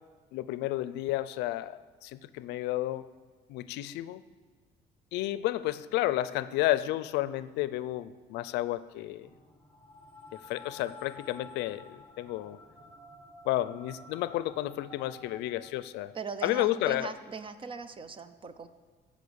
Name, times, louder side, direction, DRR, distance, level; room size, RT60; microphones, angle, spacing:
voice 1, 0.3-3.1 3.5-4.2 5.1-9.3 10.3-12.6 13.4-16.1 16.4-17.1, left 15 dB, 90° left, 15 dB, 0.5 m, -31 dB
sound 1, 9.2-15.7, left 2 dB, 10° left, 1.3 m, -51 dB
voice 2, 16.1-18.7, right 5 dB, 30° right, 12 dB, 0.7 m, -40 dB
15.0 x 5.3 x 6.9 m, 1.5 s
cardioid pair, 110°, 17 cm